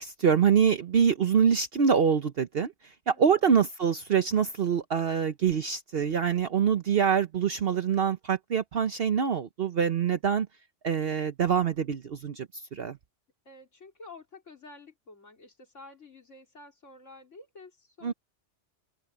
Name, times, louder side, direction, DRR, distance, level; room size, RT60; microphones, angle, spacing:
voice 1, 0.0-2.7 3.1-10.5 10.8-13.0 18.0-18.1, right 7 dB, 55° right, 1.0 m, -25 dB
voice 2, 13.5-18.1, left 3 dB, 85° left, 4.1 m, -50 dB
open air
omnidirectional pair, 1.2 m